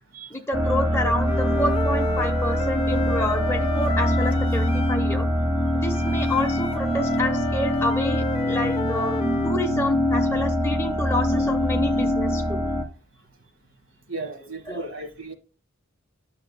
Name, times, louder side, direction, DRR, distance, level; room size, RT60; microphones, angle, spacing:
voice 1, 0.3-5.3 5.7-12.6 14.7-14.9, left 1 dB, 15° left, 0.9 m, -29 dB
sound 1, 0.5-12.8, equal, 10° right, 0.9 m, -23 dB
Wind instrument woodwind instrument, 1.3-5.1 5.9-9.6, left 3 dB, 30° left, 0.3 m, -33 dB
voice 2, 14.1-15.3, right 2 dB, 65° right, 1.5 m, -34 dB
9.6 x 6.5 x 2.2 m
head